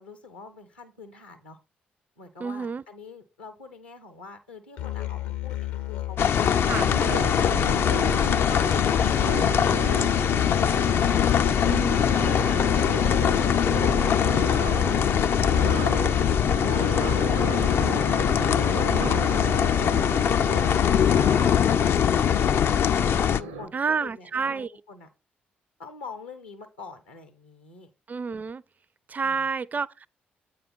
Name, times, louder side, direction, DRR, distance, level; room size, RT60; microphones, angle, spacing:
voice 1, 0.0-1.6 2.2-7.3 7.9-11.2 11.7-15.1 15.5-18.6 18.9-20.1 20.5-22.8 23.2-25.1 25.8-27.9 29.2-29.5, left 4 dB, 80° left, 1.2 m, -45 dB
voice 2, 2.4-2.8 6.7-6.9 11.6-12.0 18.9-19.3 23.7-24.7 28.1-28.6 29.1-30.1, right 5 dB, 30° right, 0.4 m, -29 dB
Musical instrument, 4.8-23.1, left 15 dB, 65° left, 0.8 m, -33 dB
sound 1, 6.2-23.4, left 8 dB, 50° left, 0.4 m, -22 dB
sound 2, 6.4-23.7, right 4 dB, 80° right, 0.8 m, -34 dB
8.7 x 3.7 x 6.0 m
figure-of-eight pair, 40°, 5 cm